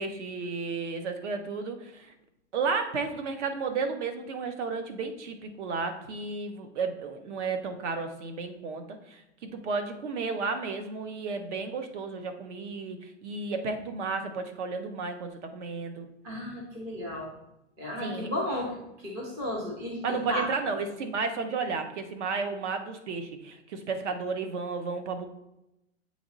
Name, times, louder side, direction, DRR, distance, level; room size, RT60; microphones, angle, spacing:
voice 1, 0.0-2.1 2.5-16.1 18.0-18.3 20.0-25.3, right 4 dB, 65° right, 7 dB, 1.0 m, -33 dB
voice 2, 16.2-17.3 17.8-20.5, left 1 dB, 10° right, -2 dB, 0.4 m, -34 dB
7.7 x 3.1 x 3.9 m, 0.88 s
supercardioid pair, 165°, 38 cm